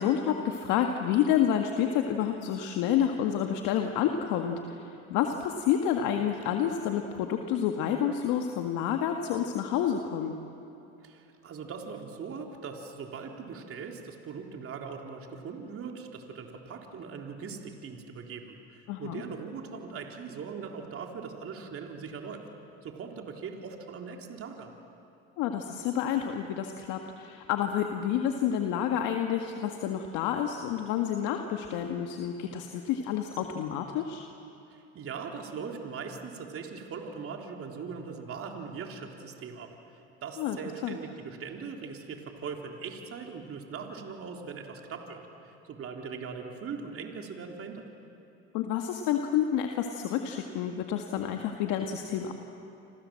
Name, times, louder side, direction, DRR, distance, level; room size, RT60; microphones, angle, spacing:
voice 1, 0.0-10.4 18.9-19.2 25.4-34.3 40.4-40.6 40.8-41.0 48.5-52.3, left 9 dB, 70° left, 4 dB, 1.9 m, -29 dB
voice 2, 11.0-22.4 22.8-24.7 34.7-47.9, right 5 dB, 45° right, 2 dB, 3.8 m, -40 dB
28.5 x 26.5 x 7.8 m, 2.8 s
supercardioid pair, 90°, 32 cm